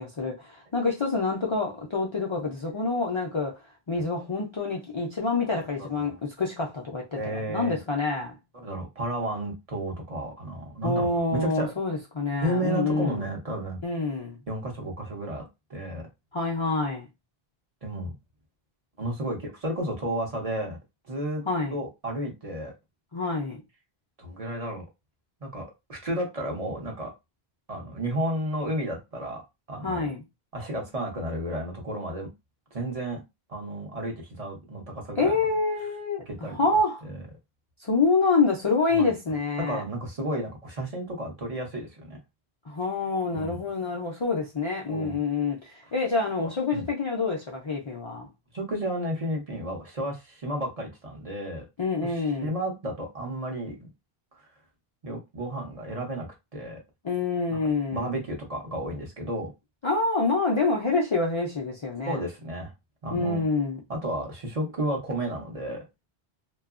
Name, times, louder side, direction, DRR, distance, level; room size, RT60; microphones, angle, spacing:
voice 1, 0.0-3.6 3.9-8.4 10.8-13.2 13.8-14.4 16.3-17.1 21.4-21.8 23.1-23.6 29.8-30.2 35.2-37.0 37.8-39.8 42.7-48.3 51.8-52.5 57.0-58.1 59.8-62.2 63.1-63.8, left 3 dB, 45° left, 0.4 m, -27 dB
voice 2, 5.8-6.2 7.1-7.8 8.5-11.7 12.4-13.8 14.5-16.1 17.8-18.1 19.0-20.8 21.1-21.4 21.7-22.7 24.2-24.8 25.4-27.1 27.7-29.4 29.7-30.1 30.5-32.3 32.7-33.2 33.5-35.4 36.3-36.6 37.0-37.2 38.9-39.1 39.6-42.2 43.3-43.6 44.9-45.2 46.4-46.8 48.5-51.7 52.0-53.9 54.4-54.5 55.0-56.8 57.9-59.5 62.1-62.7 63.0-63.4 63.9-65.8, right 1 dB, 40° right, 0.7 m, -32 dB
2.7 x 2.3 x 2.4 m
omnidirectional pair, 1.0 m